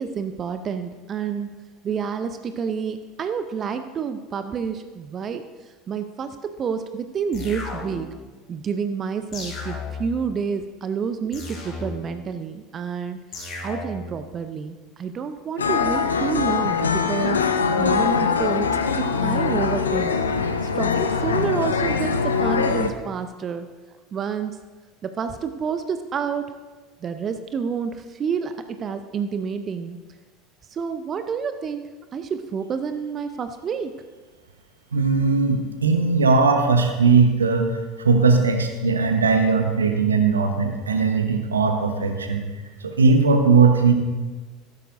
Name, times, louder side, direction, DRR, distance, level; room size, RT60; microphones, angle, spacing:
voice 1, 0.0-1.6 1.8-8.1 8.5-17.4 17.8-20.2 20.6-23.7 24.1-24.6 25.0-26.5 27.0-30.0 30.7-33.9, right 6 dB, 30° right, 9 dB, 0.6 m, -29 dB
sound 1, 7.3-8.2 9.3-10.2 11.3-12.2 13.3-14.2, left 3 dB, 35° left, 3.6 m, -34 dB
sound 2, 15.6-22.9, left 5 dB, 75° left, 0.6 m, -22 dB
voice 2, 34.9-37.7 38.0-42.5 42.8-43.9, right 4 dB, 75° right, 6 dB, 1.1 m, -19 dB
14.5 x 12.5 x 2.6 m, 1.3 s
figure-of-eight pair, 70°, 0 cm